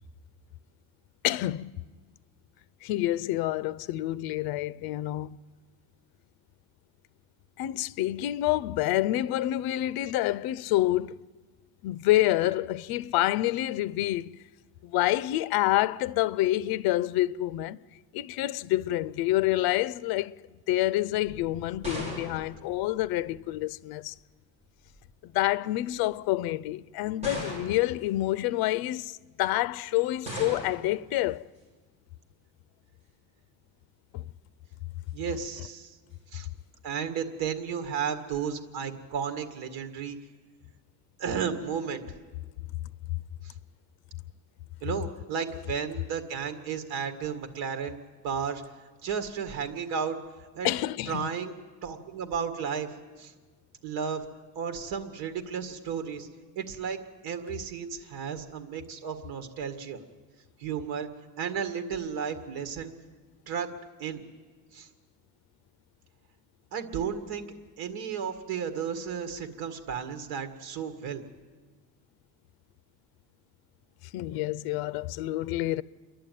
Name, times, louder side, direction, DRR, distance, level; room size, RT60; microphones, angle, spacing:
voice 1, 1.2-1.8 2.8-5.4 7.6-11.2 11.8-14.4 14.8-17.8 18.1-20.4 20.7-24.1 25.2-31.4 34.1-34.2 50.6-51.3 74.1-75.8, left 15 dB, 75° left, 0.6 m, -28 dB
sound 1, 21.2-23.6 24.6-25.1 25.9-26.0 27.2-28.0 30.2-31.0, equal, 15° right, 7.0 m, -38 dB
voice 2, 35.1-36.0 36.3-36.5 36.8-40.2 41.2-42.0 43.4-43.5 44.8-48.6 49.0-50.2 50.5-50.8 51.1-52.9 53.2-53.3 53.8-54.2 54.6-56.3 56.6-60.0 60.6-61.1 61.4-62.9 63.5-63.7 64.0-64.2 64.7-64.9 66.7-67.5 67.8-71.2, right 7 dB, 80° right, 1.9 m, -33 dB
28.5 x 11.5 x 9.2 m
cardioid pair, 165°, 36 cm